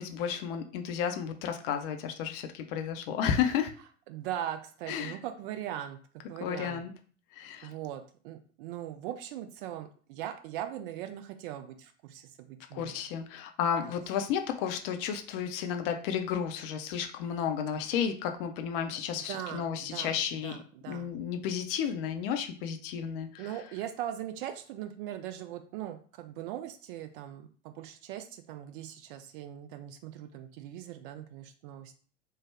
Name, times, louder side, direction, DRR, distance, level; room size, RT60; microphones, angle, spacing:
voice 1, 0.0-3.7 4.9-5.2 6.4-6.9 7.3-7.7 12.7-20.5 20.9-23.4, left 8 dB, 45° left, 6 dB, 0.5 m, -32 dB
voice 2, 4.1-6.0 6.3-6.8 7.6-13.0 13.8-13.9 19.1-21.1 23.4-31.9, right 11 dB, 45° right, 8 dB, 0.4 m, -40 dB
3.3 x 2.1 x 3.3 m, 0.42 s
figure-of-eight pair, 75°, 38 cm